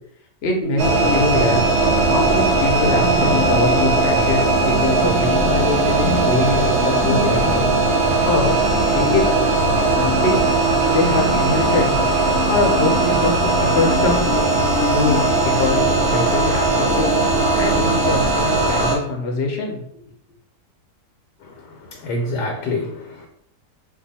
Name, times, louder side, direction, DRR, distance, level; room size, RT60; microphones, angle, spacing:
voice 1, 0.4-1.7 2.0-7.6 8.2-8.5 8.9-10.4 10.9-11.9 12.5-14.3 14.9-17.1 17.6-19.8, left 3 dB, 55° left, 1 dB, 0.7 m, -23 dB
sound 1, 0.6-18.1, right 2 dB, 5° left, 0.6 m, -27 dB
sound 2, 0.8-18.9, right 2 dB, 55° right, 0.7 m, -19 dB
voice 2, 21.4-23.3, left 2 dB, 80° left, 2 dB, 1.2 m, -27 dB
2.7 x 2.4 x 4.0 m, 0.71 s
omnidirectional pair, 1.8 m